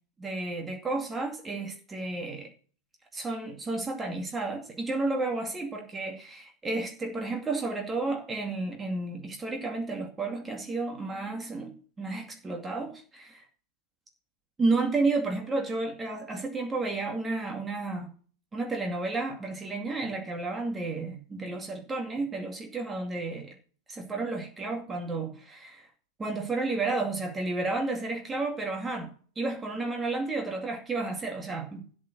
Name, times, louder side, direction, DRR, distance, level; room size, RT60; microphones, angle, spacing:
voice 1, 0.2-2.5 3.1-13.4 14.6-18.1 18.5-23.5 23.9-25.9 26.2-29.1 29.4-31.8, right 3 dB, 15° right, 3 dB, 2.3 m, -32 dB
13.0 x 6.9 x 6.0 m, 0.41 s
figure-of-eight pair, 90°, 0 cm